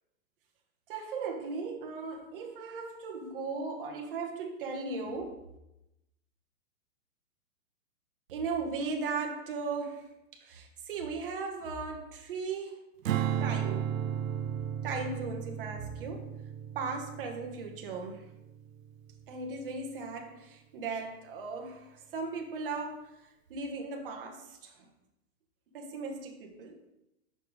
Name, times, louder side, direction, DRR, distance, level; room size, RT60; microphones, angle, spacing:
voice 1, 0.9-5.5 8.3-12.8 13.4-14.0 14.8-16.3 16.7-18.3 19.3-23.1 23.5-24.8 25.7-26.7, right 4 dB, 40° right, 3 dB, 0.9 m, -37 dB
Strum, 13.0-19.4, right 9 dB, 60° right, 0.5 m, -35 dB
6.5 x 4.8 x 3.9 m, 0.90 s
hypercardioid pair, 170°, 45 cm